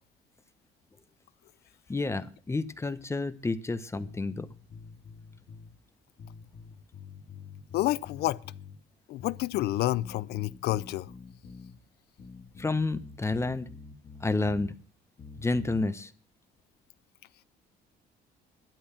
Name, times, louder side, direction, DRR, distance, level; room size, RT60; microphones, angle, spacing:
voice 1, 1.9-4.5 12.6-13.7 14.2-14.7 15.4-16.1, left 3 dB, 15° left, 1.0 m, -30 dB
sound 1, 3.9-5.7 6.2-8.8 9.2-11.8 12.2-14.7 15.2-15.8, left 5 dB, 40° left, 2.5 m, -47 dB
voice 2, 7.7-8.4 9.1-11.1, left 16 dB, 75° left, 0.6 m, -29 dB
12.5 x 11.0 x 5.8 m
cardioid pair, 110°, 17 cm